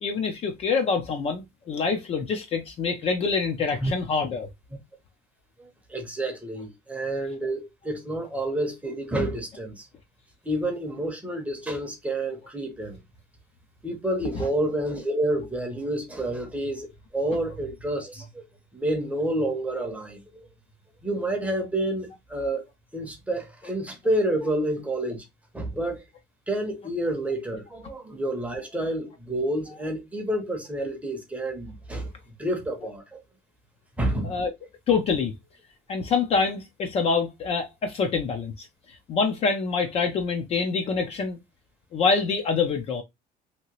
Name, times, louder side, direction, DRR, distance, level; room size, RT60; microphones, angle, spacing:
voice 1, 0.0-4.5 14.4-14.5 34.2-34.5 34.9-35.3 35.9-38.7 39.1-41.4 41.9-43.0, left 5 dB, 35° left, 0.5 m, -26 dB
voice 2, 5.6-9.8 10.4-13.0 13.8-16.9 17.1-18.4 18.7-20.5 21.0-22.6 22.9-25.2 25.5-26.0 26.5-32.1 32.4-33.2 34.0-34.4, right 1 dB, 10° right, 0.7 m, -29 dB
2.9 x 2.8 x 2.9 m
cardioid pair, 160°, 17 cm